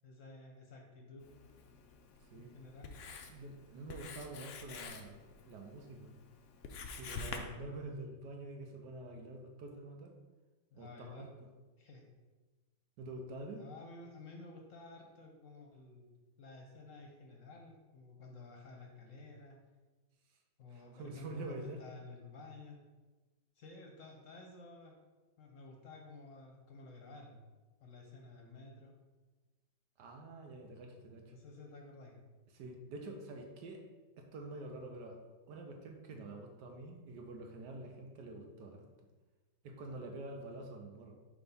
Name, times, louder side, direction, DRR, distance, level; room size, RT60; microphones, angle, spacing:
voice 1, 0.0-1.3 2.4-2.9 10.7-11.3 11.8-12.0 13.5-16.1 16.4-19.6 20.6-22.8 23.6-24.9 25.4-27.4 27.8-28.9 31.3-32.2, left 3 dB, 55° left, 1 dB, 1.0 m, -52 dB
Writing, 1.2-7.4, left 5 dB, 80° left, 0.6 m, -48 dB
voice 2, 3.3-5.2 5.4-6.1 6.9-10.1 10.8-11.3 13.0-13.6 20.7-21.8 30.0-31.3 32.5-33.8 34.2-35.2 35.5-38.8 39.6-41.1, right 2 dB, 70° right, 3 dB, 1.4 m, -47 dB
5.1 x 3.4 x 5.3 m, 1.2 s
omnidirectional pair, 2.0 m